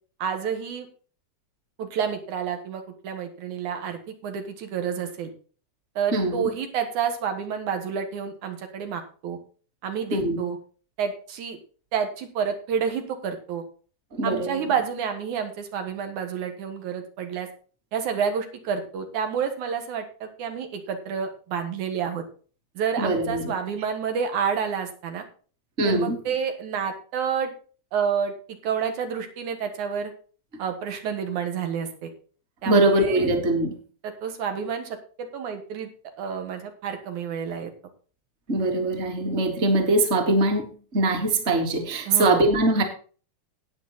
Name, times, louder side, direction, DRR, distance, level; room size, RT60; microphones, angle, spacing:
voice 1, 0.2-0.9 1.8-5.3 6.0-9.4 9.8-10.6 11.0-11.6 11.9-13.6 14.2-17.5 17.9-22.2 22.8-25.2 25.8-27.5 27.9-30.1 30.6-32.1 32.6-33.3 34.0-35.9 36.2-37.7 42.1-42.5, right 7 dB, 80° right, 6 dB, 2.9 m, -29 dB
voice 2, 6.1-6.5 10.1-10.4 14.1-14.6 23.0-23.4 25.8-26.2 32.7-33.8 38.5-42.8, right 2 dB, 25° right, 4 dB, 1.9 m, -22 dB
12.0 x 8.9 x 4.1 m, 0.39 s
omnidirectional pair, 3.4 m